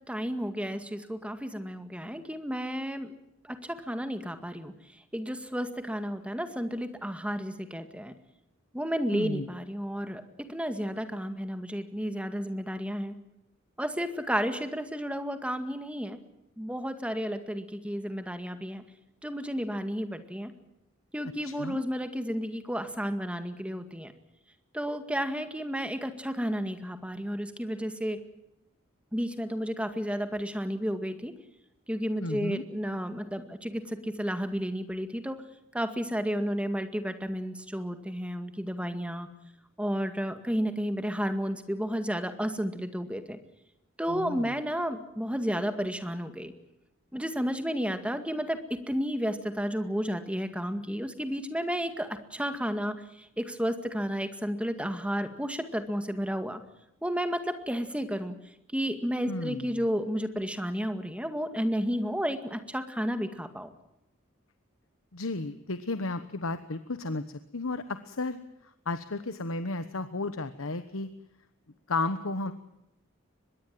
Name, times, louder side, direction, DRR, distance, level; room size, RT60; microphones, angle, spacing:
voice 1, 0.0-3.1 3.4-4.7 5.1-8.1 8.7-13.1 13.8-16.2 16.6-18.8 19.2-20.5 21.1-24.1 24.7-28.2 29.1-31.3 31.9-35.4 35.7-39.3 39.8-43.4 44.0-46.5 47.1-56.6 57.0-58.3 58.7-63.7, equal, 5° right, 8 dB, 2.0 m, -32 dB
voice 2, 9.1-9.5 21.4-21.8 32.2-32.6 44.1-44.5 59.2-59.8 65.1-68.4 68.9-71.1 71.9-72.5, left 2 dB, 90° left, 10 dB, 1.2 m, -33 dB
24.0 x 21.5 x 7.6 m, 0.85 s
head